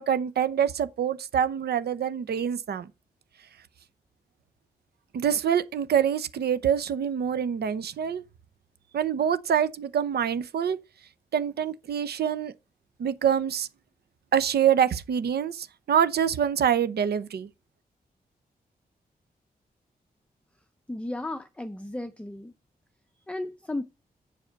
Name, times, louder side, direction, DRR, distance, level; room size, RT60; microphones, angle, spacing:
voice 1, 0.0-2.9 5.1-8.2 8.9-10.8 11.3-12.5 13.0-13.7 14.3-17.5, right 8 dB, 90° right, 0.7 m, -25 dB
voice 2, 20.9-22.5 23.3-23.8, left 2 dB, 5° left, 0.6 m, -34 dB
7.5 x 5.8 x 5.2 m
wide cardioid pair, 110°, 16 cm